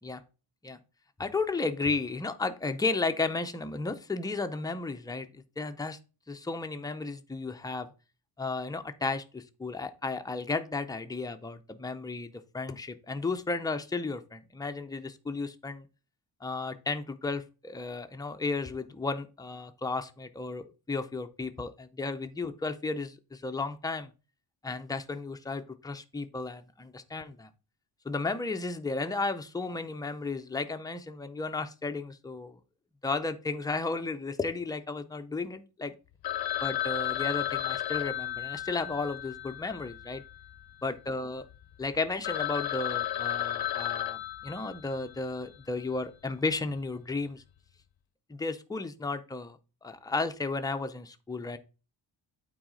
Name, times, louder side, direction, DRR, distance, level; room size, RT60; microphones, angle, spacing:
voice 1, 1.2-6.0 6.3-7.9 8.4-15.9 16.4-24.1 24.6-27.5 28.0-32.6 33.0-35.9 36.6-40.2 40.8-41.4 41.8-47.4 48.3-51.6, left 3 dB, 10° left, 7 dB, 0.4 m, -34 dB
Telephone, 36.2-40.6 40.9-41.0 41.5-41.6 41.9-42.0 42.2-45.2, left 12 dB, 55° left, 0.6 m, -33 dB
8.9 x 4.1 x 3.8 m, 0.32 s
wide cardioid pair, 145°, 45 cm